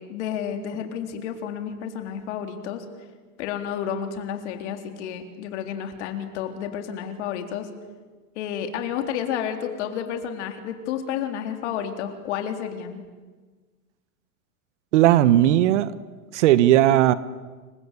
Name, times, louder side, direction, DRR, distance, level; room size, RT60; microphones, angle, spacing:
voice 1, 0.0-2.9 3.4-7.7 8.4-13.0, left 8 dB, 50° left, 5 dB, 3.8 m, -31 dB
voice 2, 14.9-15.9 16.3-17.1, right 13 dB, 50° right, 16 dB, 1.2 m, -17 dB
29.0 x 24.5 x 8.3 m, 1.4 s
supercardioid pair, 160°, 45 cm